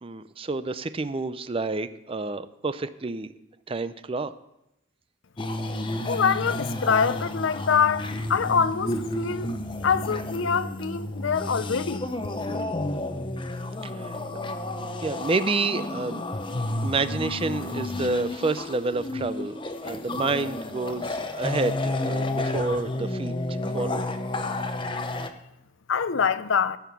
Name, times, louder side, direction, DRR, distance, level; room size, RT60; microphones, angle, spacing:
voice 1, 0.0-3.3 3.7-4.3 13.8-14.2 15.0-16.2 16.8-24.0, right 3 dB, 30° right, 0.5 m, -29 dB
sound 1, 5.4-25.3, left 2 dB, 25° left, 0.7 m, -31 dB
voice 2, 5.6-9.5 9.8-12.1 25.9-26.8, left 6 dB, 70° left, 0.6 m, -25 dB
15.5 x 5.9 x 7.0 m
head